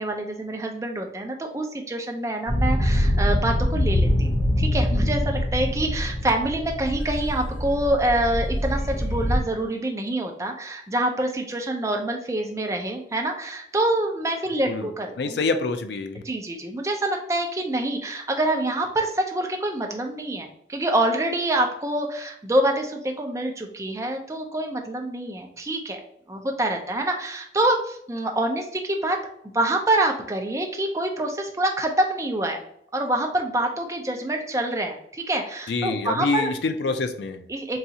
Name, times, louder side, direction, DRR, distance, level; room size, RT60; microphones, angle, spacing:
voice 1, 0.0-4.3 4.6-15.4 16.2-26.0 26.3-29.2 29.5-32.6 32.9-36.5 37.5-37.8, right 1 dB, 15° right, 2 dB, 0.4 m, -26 dB
sound 1, 2.5-9.4, left 1 dB, 30° left, 0.7 m, -24 dB
voice 2, 15.2-16.2 35.7-37.4, left 3 dB, 70° left, 8 dB, 0.4 m, -26 dB
3.9 x 2.4 x 2.7 m, 0.69 s
head